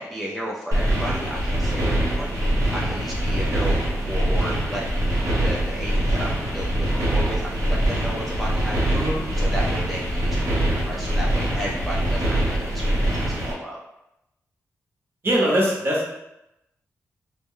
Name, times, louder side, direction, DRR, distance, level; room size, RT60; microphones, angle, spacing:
voice 1, 0.0-2.3 2.7-3.8 4.0-4.8 5.4-9.0 9.4-13.8, equal, ahead, -5 dB, 0.4 m, -33 dB
sound 1, 0.7-13.5, right 1 dB, 75° right, 0.9 m, -23 dB
voice 2, 8.9-9.2 15.2-16.1, equal, 40° right, -4 dB, 0.8 m, -22 dB
2.1 x 2.0 x 3.6 m, 0.86 s
wide cardioid pair, 115°, 6 cm